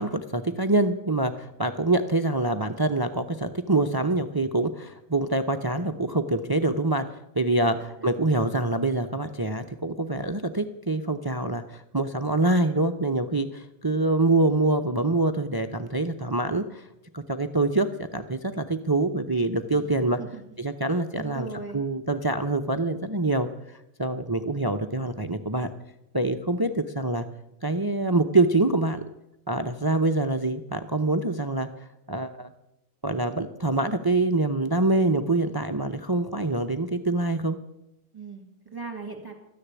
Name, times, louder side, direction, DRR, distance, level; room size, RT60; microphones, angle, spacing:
voice 1, 0.0-7.1 7.3-16.9 17.1-20.2 20.6-21.5 21.7-25.7 26.1-27.3 27.6-29.0 29.5-31.7 32.1-32.5 33.0-37.6, right 2 dB, 40° right, 9 dB, 0.3 m, -25 dB
voice 2, 7.6-8.1 19.7-19.9 20.2-20.4 21.1-21.8 38.1-39.3, right 4 dB, 15° right, 2 dB, 2.3 m, -39 dB
13.5 x 10.0 x 8.3 m, 0.89 s
omnidirectional pair, 1.5 m